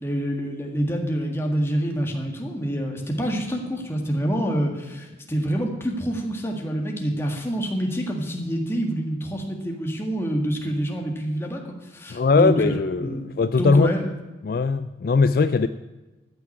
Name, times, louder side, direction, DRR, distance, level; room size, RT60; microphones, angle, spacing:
voice 1, 0.0-14.1, right 1 dB, 15° left, 1 dB, 1.7 m, -27 dB
voice 2, 12.1-13.9 14.4-15.7, left 4 dB, 50° left, 12 dB, 0.3 m, -20 dB
14.0 x 6.0 x 9.7 m, 1.1 s
head